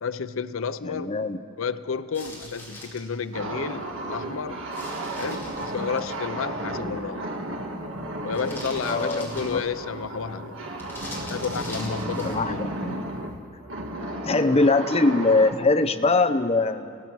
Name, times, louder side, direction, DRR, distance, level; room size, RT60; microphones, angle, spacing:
voice 1, 0.0-1.2 1.6-4.6 5.2-7.3 8.2-10.6 11.2-12.6, left 5 dB, 90° left, 0.6 m, -31 dB
voice 2, 0.8-1.4 8.8-9.6 12.2-13.1 14.2-17.0, left 3 dB, 30° left, 0.8 m, -22 dB
sound 1, 2.1-3.1 4.7-6.2 8.3-9.9 10.8-12.5, left 1 dB, 10° left, 4.7 m, -42 dB
sound 2, 3.3-15.5, right 1 dB, 75° right, 2.0 m, -33 dB
29.5 x 17.0 x 6.1 m
head